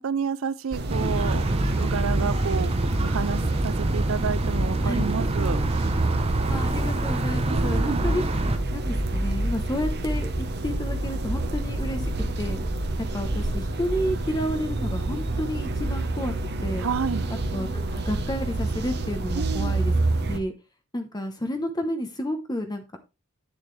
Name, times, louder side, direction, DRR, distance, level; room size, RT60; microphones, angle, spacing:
voice 1, 0.0-5.6 7.5-8.0 16.8-17.3 19.3-19.7, right 6 dB, 70° right, 0.5 m, -30 dB
sound 1, 0.7-20.4, right 2 dB, 50° right, 1.0 m, -28 dB
sound 2, 0.9-8.6, right 1 dB, 30° right, 0.7 m, -26 dB
voice 2, 6.5-8.2 8.7-12.1 12.4-12.6 13.1-16.3 16.6-16.9 17.5-19.9 20.3-20.5 20.9-23.0, equal, 20° left, 0.9 m, -31 dB
8.9 x 7.1 x 3.2 m
head